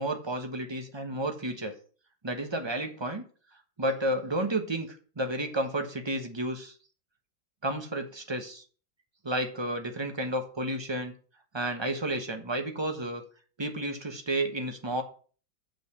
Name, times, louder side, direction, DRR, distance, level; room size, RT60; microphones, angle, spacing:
voice 1, 0.0-1.7 2.2-3.2 3.8-6.7 7.6-8.6 9.2-11.1 11.5-13.2 13.6-15.0, right 1 dB, 20° right, 5 dB, 0.8 m, -31 dB
7.3 x 5.8 x 6.8 m, 0.41 s
omnidirectional pair, 2.1 m